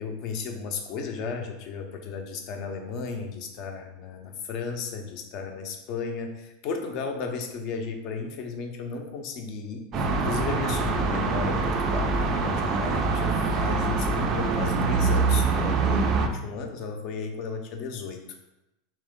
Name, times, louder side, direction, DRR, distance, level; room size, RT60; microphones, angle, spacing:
voice 1, 0.0-18.2, left 5 dB, 40° left, 4 dB, 0.6 m, -34 dB
sound 1, 9.9-16.3, right 4 dB, 30° right, 0.4 m, -24 dB
3.7 x 3.1 x 3.5 m, 0.92 s
supercardioid pair, 165°, 0 cm